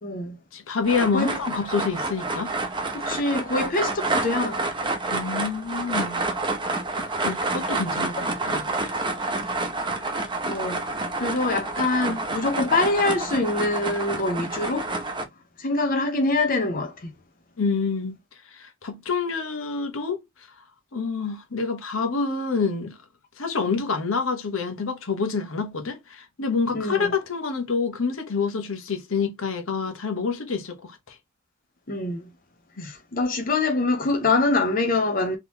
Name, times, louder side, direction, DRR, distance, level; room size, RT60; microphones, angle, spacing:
voice 1, 0.0-0.4 1.1-1.3 2.9-4.6 10.4-10.8 11.2-14.9 15.6-17.1 26.7-27.1 31.9-32.3 32.8-35.4, left 3 dB, 45° left, 0.7 m, -24 dB
voice 2, 0.5-2.5 5.1-6.3 7.2-8.7 17.6-18.2 18.5-20.2 20.9-23.0 23.4-31.2 32.8-32.9, left 4 dB, 85° left, 1.0 m, -27 dB
sound 1, 0.8-15.2, right 2 dB, 25° right, 0.7 m, -28 dB
3.7 x 3.0 x 2.8 m
head